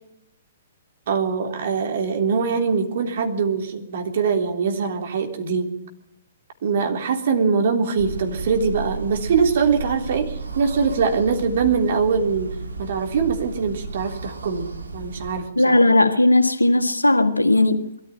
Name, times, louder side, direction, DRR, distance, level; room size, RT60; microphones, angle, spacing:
voice 1, 1.1-5.7 6.6-12.5 12.8-15.8, right 5 dB, 55° right, 3.5 m, -22 dB
sound 1, 8.0-15.4, right 3 dB, 80° right, 2.4 m, -33 dB
voice 2, 15.5-17.9, left 2 dB, 90° left, 1.7 m, -17 dB
22.0 x 14.0 x 8.9 m
figure-of-eight pair, 115°, 0 cm